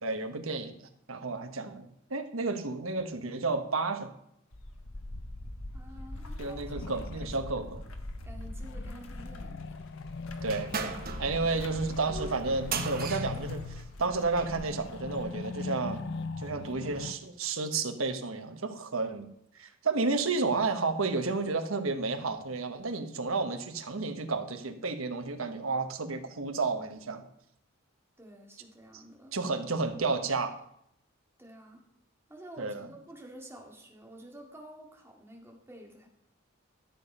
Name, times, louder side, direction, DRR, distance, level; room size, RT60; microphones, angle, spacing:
voice 1, 0.0-4.1 6.4-7.8 10.4-19.3 19.6-27.2 28.9-29.0 29.3-30.6 32.6-32.9, right 3 dB, 85° right, 7 dB, 1.2 m, -32 dB
sound 1, 4.5-15.3, left 1 dB, 85° left, 1.3 m, -43 dB
voice 2, 5.7-7.3 8.2-9.6 28.2-29.4 31.4-31.8 32.3-36.1, right 1 dB, 10° right, 0 dB, 2.0 m, -50 dB
sound 2, 6.4-7.5 8.5-17.1, left 4 dB, 55° left, 0.5 m, -41 dB
sound 3, 10.4-14.6, right 5 dB, 45° right, 1.1 m, -38 dB
12.5 x 7.1 x 5.4 m, 0.75 s
head